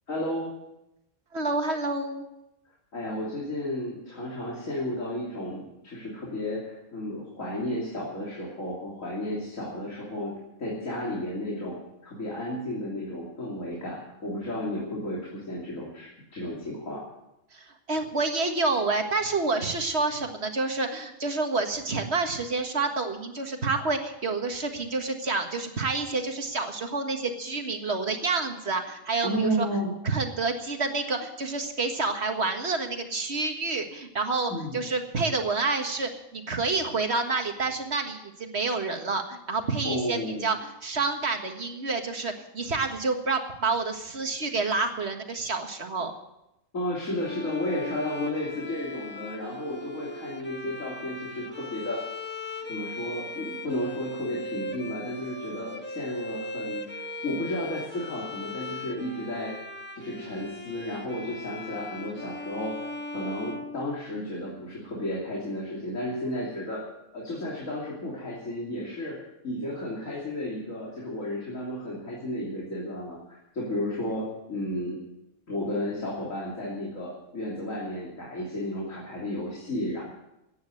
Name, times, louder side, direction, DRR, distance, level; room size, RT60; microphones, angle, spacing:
voice 1, 0.1-0.5 2.9-10.3 10.6-11.8 12.0-17.0 29.2-29.9 34.5-34.8 39.8-40.5 46.7-52.0 52.7-59.5 60.0-62.7 63.1-66.8 67.1-69.2 69.4-75.0 75.5-80.0, left 1 dB, 65° left, -5 dB, 3.5 m, -33 dB
voice 2, 1.3-2.2 17.5-29.7 30.1-46.1, right 3 dB, 50° right, 5 dB, 1.8 m, -28 dB
Bowed string instrument, 47.1-64.4, left 1 dB, 10° left, 1.3 m, -39 dB
15.5 x 9.7 x 7.7 m, 0.89 s
omnidirectional pair, 1.5 m